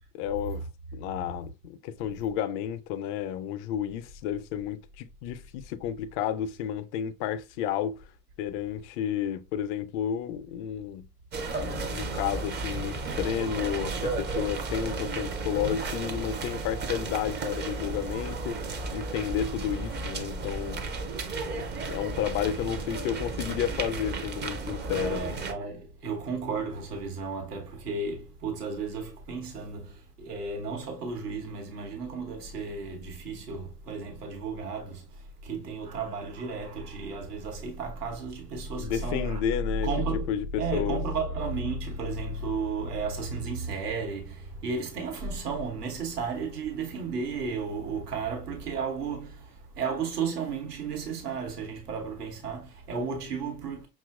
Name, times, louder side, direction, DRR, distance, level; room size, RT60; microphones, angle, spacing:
voice 1, 0.1-0.6 0.9-8.1 8.4-11.1 11.6-20.8 21.5-25.4 38.8-41.0, left 9 dB, 50° left, 0.5 m, -32 dB
sound 1, 11.3-25.5, right 3 dB, 25° right, 0.6 m, -34 dB
voice 2, 24.8-39.4 39.8-40.3 40.6-53.9, right 4 dB, 80° right, 1.2 m, -33 dB
5.6 x 2.4 x 2.3 m
figure-of-eight pair, 70°, 46 cm